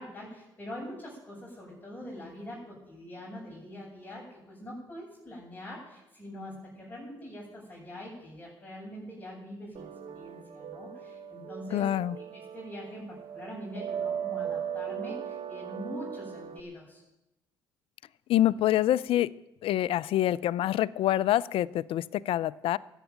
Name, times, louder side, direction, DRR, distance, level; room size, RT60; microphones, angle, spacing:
voice 1, 0.0-9.9 10.1-17.0, equal, 15° left, -7 dB, 7.0 m, -43 dB
sound 1, 9.7-16.6, right 8 dB, 65° right, 1.1 m, -38 dB
voice 2, 11.7-12.1 18.3-19.3 19.6-22.8, left 13 dB, 70° left, 20 dB, 0.4 m, -26 dB
13.5 x 8.2 x 9.0 m, 0.94 s
supercardioid pair, 55°, 10 cm